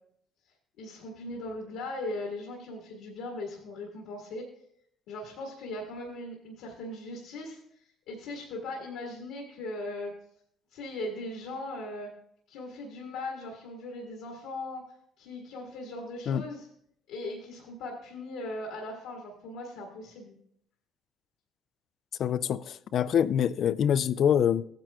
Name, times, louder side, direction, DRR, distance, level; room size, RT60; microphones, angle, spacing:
voice 1, 0.8-4.4 5.1-10.1 10.7-12.1 12.5-14.8 15.2-16.7 17.1-20.4, left 2 dB, 85° left, 1.6 m, -39 dB
voice 2, 22.2-24.6, left 9 dB, 65° left, 0.4 m, -25 dB
15.5 x 8.9 x 2.2 m
supercardioid pair, 65°, 0 cm